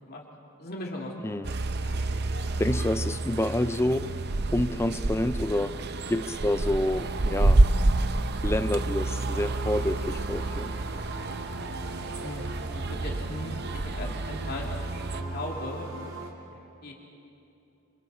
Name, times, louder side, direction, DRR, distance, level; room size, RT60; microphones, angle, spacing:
voice 1, 0.6-1.1 12.2-12.4 12.7-13.5 13.8-15.9 16.4-16.9, left 1 dB, 45° left, 3.0 m, -38 dB
sound 1, 1.4-15.2, right 2 dB, 45° right, 0.7 m, -28 dB
voice 2, 2.6-4.2 4.5-5.8 6.1-7.6 8.4-10.8, left 1 dB, 10° left, 0.4 m, -28 dB
sound 2, 9.3-16.3, right 2 dB, 65° right, 3.0 m, -39 dB
28.5 x 27.0 x 4.4 m
head